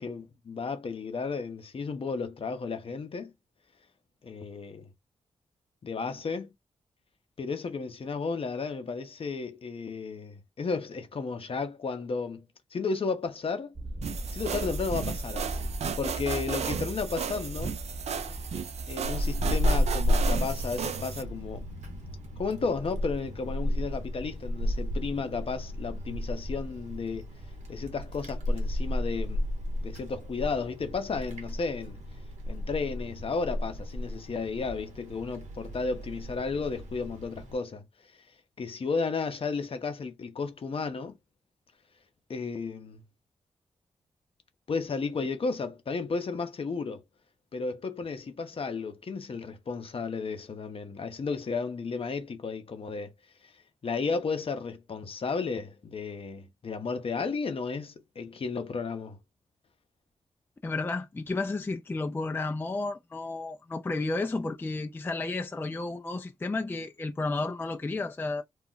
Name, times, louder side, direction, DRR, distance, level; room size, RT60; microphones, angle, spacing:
voice 1, 0.0-3.3 4.2-4.9 5.8-6.5 7.4-12.4 12.7-13.7 14.3-15.7 16.0-17.7 18.9-21.6 22.4-27.3 27.7-29.5 29.8-32.0 32.5-37.8 38.6-41.2 42.3-43.0 44.7-47.0 47.5-53.1 53.4-53.5 53.8-59.2, left 4 dB, 50° left, 0.6 m, -33 dB
sound 1, 13.7-19.7, right 1 dB, 25° right, 0.8 m, -37 dB
sound 2, 14.0-21.2, right 7 dB, 65° right, 0.4 m, -35 dB
Wind, 19.0-37.5, left 1 dB, 85° right, 0.8 m, -33 dB
voice 2, 60.6-68.4, left 3 dB, 20° left, 0.3 m, -32 dB
2.3 x 2.1 x 3.8 m
cardioid pair, 60°, 12 cm